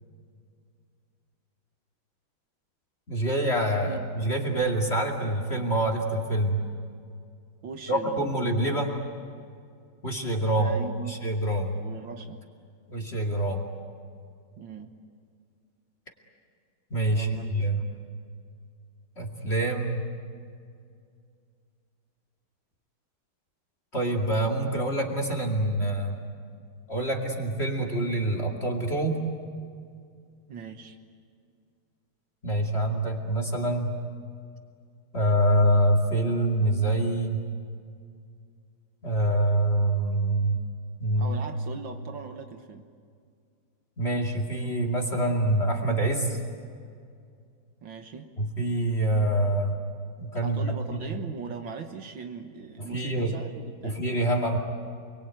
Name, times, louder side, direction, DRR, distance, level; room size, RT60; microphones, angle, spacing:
voice 1, 3.1-6.6 7.9-9.0 10.0-10.7 11.1-11.8 12.9-13.6 16.9-17.8 19.2-20.1 23.9-26.2 26.9-29.2 32.4-33.9 35.1-37.4 39.0-40.6 41.0-41.4 44.0-46.4 48.4-49.8 50.2-51.1 52.9-53.3 53.8-54.6, right 1 dB, 30° left, 4 dB, 2.7 m, -26 dB
voice 2, 7.6-8.3 10.5-11.2 11.7-12.5 14.6-14.9 17.1-17.7 30.5-31.0 41.2-42.9 47.8-48.3 50.4-54.0, right 5 dB, 70° right, 6 dB, 2.0 m, -39 dB
29.5 x 22.0 x 9.2 m, 2.3 s
omnidirectional pair, 2.3 m